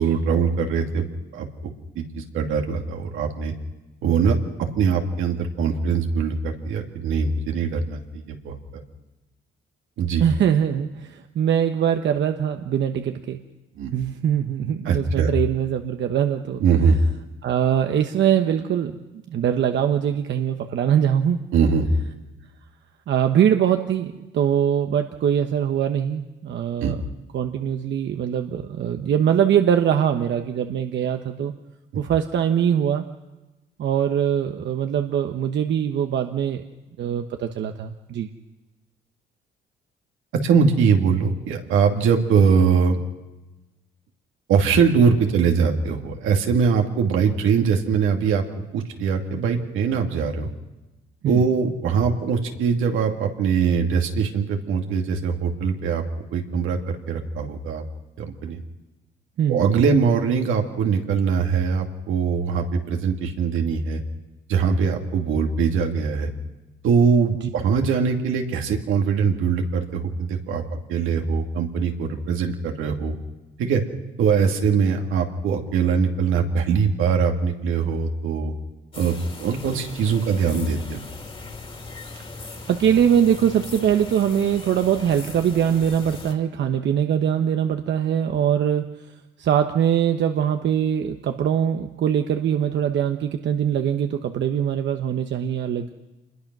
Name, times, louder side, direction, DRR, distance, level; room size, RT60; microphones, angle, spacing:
voice 1, 0.0-1.5 2.0-3.5 4.0-8.8 10.0-10.2 13.8-13.9 14.8-15.3 16.6-17.0 21.5-21.9 26.8-27.0 31.9-32.0 40.4-43.0 44.5-48.4 48.7-50.5 51.3-56.0 56.3-57.8 58.2-58.6 59.5-64.0 64.5-66.3 66.8-73.1 73.6-73.8 74.2-78.5 79.0-79.1 79.4-81.0, right 6 dB, 85° right, 3 dB, 2.6 m, -22 dB
voice 2, 10.2-13.4 13.9-16.6 17.4-21.5 23.1-26.9 27.3-31.5 31.9-33.0 33.8-36.6 37.0-38.3 51.2-51.4 59.4-59.7 82.7-88.8 89.4-95.9, right 9 dB, 65° right, 6 dB, 1.2 m, -22 dB
sound 1, 78.9-86.3, left 3 dB, 30° left, 3.0 m, -39 dB
27.0 x 21.5 x 6.2 m, 1.1 s
cardioid pair, 90°, 20 cm